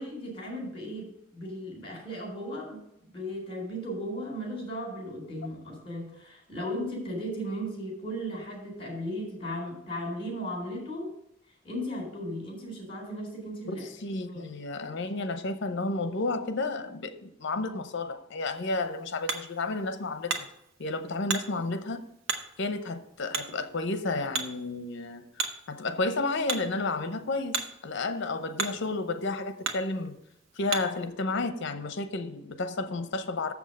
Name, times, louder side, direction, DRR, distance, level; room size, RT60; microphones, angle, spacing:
voice 1, 0.0-11.1 11.6-13.9 14.3-14.5, equal, 30° left, 3.6 m, -36 dB
voice 2, 13.7-20.5 20.8-22.0 22.6-25.3 25.7-30.2 30.6-33.5, left 3 dB, 65° left, 0.7 m, -32 dB
Hammer, 18.4-31.1, right 4 dB, 80° right, 0.9 m, -38 dB
7.2 x 6.2 x 6.3 m
head